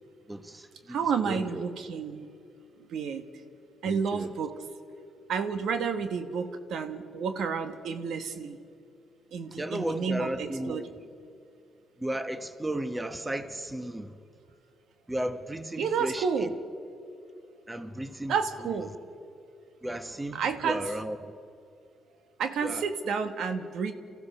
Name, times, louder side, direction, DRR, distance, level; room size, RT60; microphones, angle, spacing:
voice 1, 0.3-1.0 1.3-1.6 3.8-4.3 9.6-10.9 12.0-14.1 15.1-16.5 17.7-18.3 19.8-21.3 22.6-22.8, right 1 dB, 10° right, 0.9 m, -34 dB
voice 2, 0.9-2.3 2.9-3.2 3.8-4.6 5.3-8.6 9.3-10.9 15.8-16.5 18.3-18.9 20.3-20.9 22.4-23.9, right 6 dB, 75° right, 1.3 m, -30 dB
29.0 x 15.0 x 6.6 m
cardioid pair, 125°, 0 cm